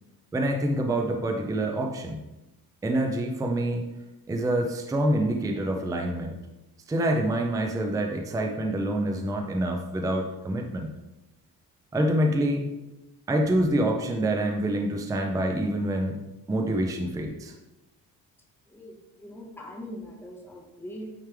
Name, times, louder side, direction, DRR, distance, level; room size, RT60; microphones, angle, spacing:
voice 1, 0.3-2.2 2.8-3.8 4.3-6.4 6.9-10.9 11.9-12.7 13.3-16.2 16.5-17.5, right 1 dB, 10° right, 2 dB, 0.4 m, -26 dB
voice 2, 18.7-21.1, equal, 5° left, -1 dB, 1.0 m, -41 dB
9.1 x 3.2 x 3.4 m, 0.99 s
cardioid pair, 145°, 37 cm